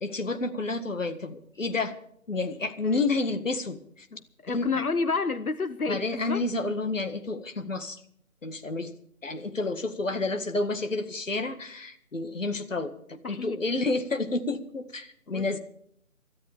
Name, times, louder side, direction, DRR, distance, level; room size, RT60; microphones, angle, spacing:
voice 1, 0.0-2.0 2.3-3.8 4.5-4.8 5.9-8.0 8.4-8.9 9.2-15.6, left 3 dB, 60° left, 1.9 m, -30 dB
voice 2, 4.1-6.4 13.2-13.6 15.3-15.6, left 4 dB, 85° left, 0.9 m, -30 dB
24.0 x 13.5 x 3.5 m
figure-of-eight pair, 150°, 42 cm